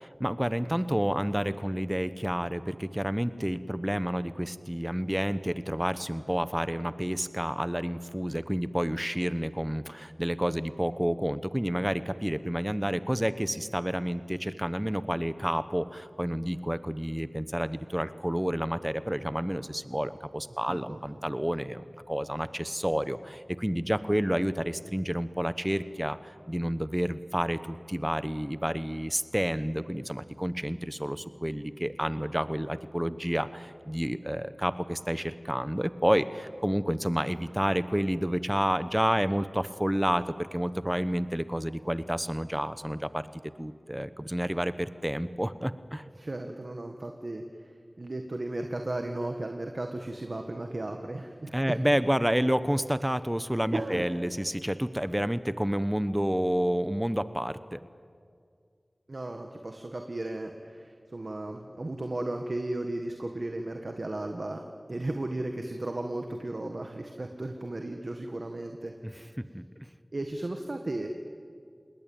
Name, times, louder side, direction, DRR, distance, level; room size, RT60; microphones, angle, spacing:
voice 1, 0.2-43.3 43.6-46.0 51.5-57.8 69.0-69.9, equal, 10° right, 14 dB, 1.0 m, -29 dB
voice 2, 20.7-21.0 46.2-47.7 48.0-51.8 53.7-54.1 59.1-64.6 64.9-69.3 70.1-71.1, right 2 dB, 60° right, 4 dB, 1.7 m, -35 dB
28.0 x 20.5 x 8.9 m, 2.2 s
wide cardioid pair, 45°, 0 cm